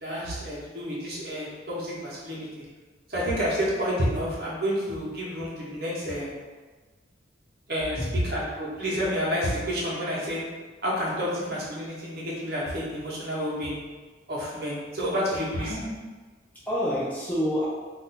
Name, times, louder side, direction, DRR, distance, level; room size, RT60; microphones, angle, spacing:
voice 1, 0.0-2.6 3.1-6.3 7.7-10.4 10.8-13.7 14.3-15.7, equal, 50° right, -6 dB, 0.9 m, -29 dB
voice 2, 15.6-16.0 16.5-17.7, equal, 10° left, -8 dB, 0.4 m, -28 dB
2.6 x 2.3 x 4.0 m, 1.3 s
head